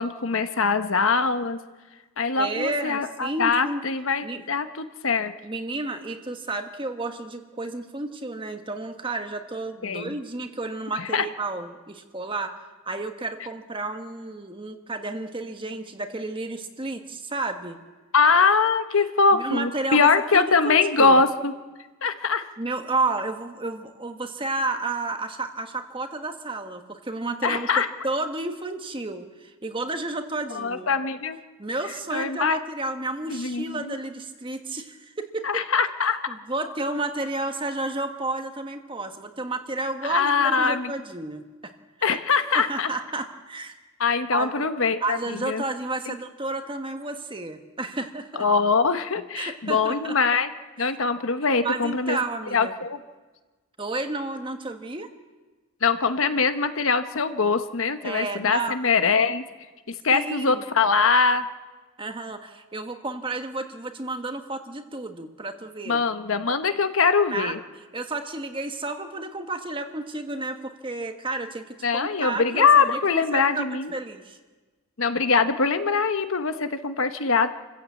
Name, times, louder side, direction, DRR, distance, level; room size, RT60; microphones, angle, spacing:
voice 1, 0.0-1.6 2.2-5.3 9.8-10.1 11.0-11.2 18.1-21.5 22.0-22.4 27.4-27.9 30.5-31.4 32.1-32.6 33.3-34.0 35.4-36.2 40.0-40.9 42.0-42.9 44.0-45.6 48.4-50.5 50.8-52.2 52.5-53.0 55.8-59.4 59.9-61.4 65.9-67.6 71.8-73.9 75.0-77.5, left 5 dB, 60° left, 9 dB, 1.0 m, -22 dB
voice 2, 2.4-3.8 4.2-4.4 5.4-12.6 12.9-17.8 19.3-21.2 22.6-30.9 31.6-35.5 36.3-41.7 42.0-42.2 42.5-43.7 44.3-44.7 45.0-48.4 49.3-50.1 50.8-50.9 51.6-52.7 53.8-55.1 58.0-58.8 60.1-60.6 62.0-66.0 67.3-67.5 67.9-73.7 73.9-74.4, right 2 dB, 20° right, 6 dB, 1.3 m, -31 dB
28.0 x 15.0 x 8.4 m, 1.3 s
head